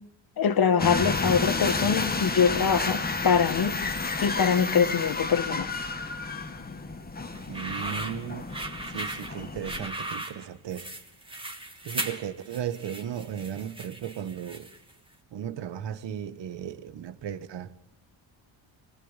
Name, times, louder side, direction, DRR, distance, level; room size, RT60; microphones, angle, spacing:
voice 1, 0.4-3.8 4.2-5.7, left 6 dB, 50° left, 1.9 m, -24 dB
sound 1, 0.8-9.9, left 3 dB, 20° left, 2.0 m, -31 dB
sound 2, 7.3-14.9, right 1 dB, 10° right, 3.0 m, -37 dB
voice 2, 7.5-8.5 8.9-10.9 11.9-14.7 15.3-17.7, right 9 dB, 65° right, 1.7 m, -36 dB
25.5 x 19.0 x 9.1 m
cardioid pair, 115°, 46 cm